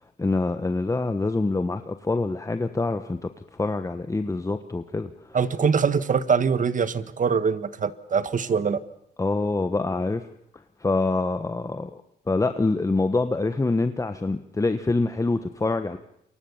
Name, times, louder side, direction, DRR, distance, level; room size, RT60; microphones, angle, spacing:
voice 1, 0.2-3.3 3.6-5.1 9.2-10.3 10.8-11.9 12.3-16.0, left 3 dB, 15° left, 9 dB, 1.2 m, -25 dB
voice 2, 5.3-8.8, right 6 dB, 40° right, 13 dB, 1.6 m, -23 dB
28.5 x 23.5 x 7.2 m, 0.78 s
cardioid pair, 90°, 20 cm